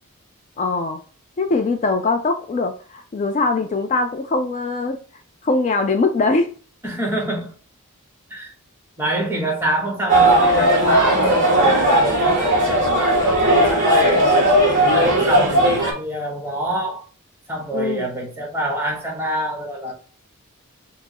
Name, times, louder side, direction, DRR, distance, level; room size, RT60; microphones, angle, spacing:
voice 1, 0.6-1.0 1.4-5.0 5.4-6.5 17.7-18.1, left 3 dB, 30° left, 0.3 m, -21 dB
voice 2, 6.8-7.5 8.3-8.5 9.0-14.2 14.7-17.0 17.5-19.9, right 1 dB, 10° right, 1.2 m, -26 dB
sound 1, 10.1-15.9, right 1 dB, 35° right, 1.9 m, -16 dB
4.4 x 2.0 x 4.2 m
head